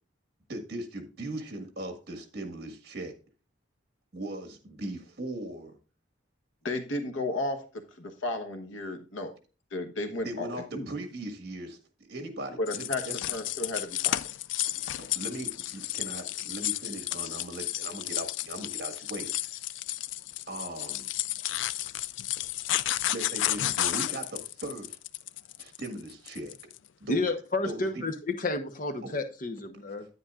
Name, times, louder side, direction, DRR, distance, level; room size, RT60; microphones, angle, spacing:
voice 1, 0.5-3.1 4.1-5.7 10.2-11.8 12.1-13.2 15.0-19.3 20.5-21.1 23.1-25.0 25.6-26.6 27.0-27.3 27.7-27.8 29.0-29.1, right 1 dB, 55° right, 5 dB, 1.7 m, -38 dB
voice 2, 6.6-9.3 9.7-10.9 12.6-14.3, left 2 dB, 90° left, 7 dB, 1.2 m, -34 dB
sound 1, 12.7-26.8, left 14 dB, 70° left, 0.3 m, -32 dB
voice 3, 27.1-30.1, left 2 dB, 45° left, 7 dB, 1.0 m, -31 dB
9.9 x 9.5 x 2.4 m, 0.34 s
head